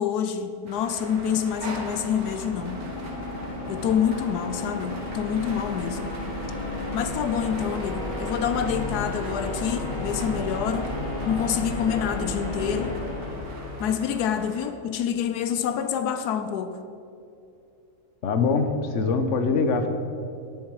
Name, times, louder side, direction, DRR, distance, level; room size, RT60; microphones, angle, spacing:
voice 1, 0.0-2.8 3.7-6.1 6.9-10.9 11.3-12.9 13.8-16.8, left 8 dB, 85° left, 9 dB, 1.2 m, -27 dB
sound 1, 0.7-14.7, right 1 dB, 70° right, 2.2 m, -41 dB
sound 2, 1.4-14.2, left 2 dB, 40° left, 2.2 m, -33 dB
voice 2, 18.2-19.9, left 4 dB, 55° left, 7 dB, 1.3 m, -23 dB
18.5 x 7.2 x 4.8 m, 2.7 s
omnidirectional pair, 1.6 m